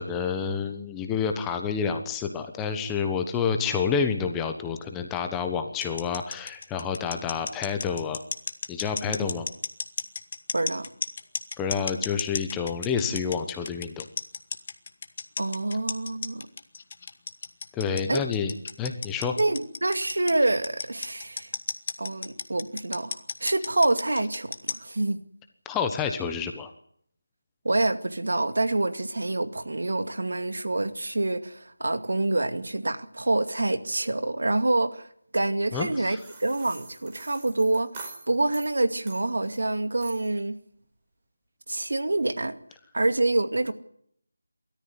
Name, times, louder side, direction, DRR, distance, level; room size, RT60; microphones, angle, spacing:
voice 1, 0.0-8.2 8.7-9.5 11.6-14.1 17.7-19.4 25.6-26.7 35.7-36.2, left 6 dB, 10° left, 6 dB, 1.2 m, -29 dB
sound 1, 5.8-24.9, left 5 dB, 35° left, 1.4 m, -33 dB
voice 2, 10.5-10.9 15.4-16.5 18.1-18.2 19.4-21.5 22.0-25.2 27.6-35.1 35.3-40.6 41.7-42.6 42.9-43.7, right 2 dB, 65° right, 8 dB, 2.3 m, -26 dB
sound 2, 36.2-38.7 39.1-39.7 40.0-40.4, right 3 dB, 20° right, 4.6 m, -44 dB
27.5 x 14.0 x 9.8 m, 0.69 s
figure-of-eight pair, 165°, 0 cm